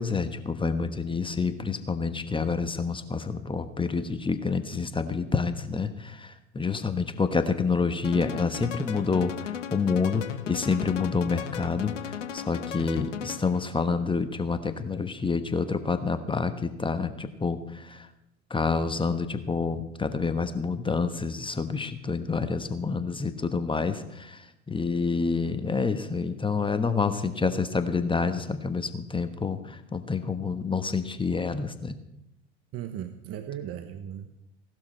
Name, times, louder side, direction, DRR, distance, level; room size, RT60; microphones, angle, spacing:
voice 1, 0.0-18.1 18.5-32.0, left 4 dB, 15° left, 9 dB, 1.2 m, -28 dB
sound 1, 8.0-13.7, left 9 dB, 90° left, 1.2 m, -36 dB
voice 2, 32.7-34.5, right 10 dB, 40° right, 9 dB, 1.2 m, -37 dB
17.5 x 12.0 x 4.5 m, 0.86 s
hypercardioid pair, 85°, 36 cm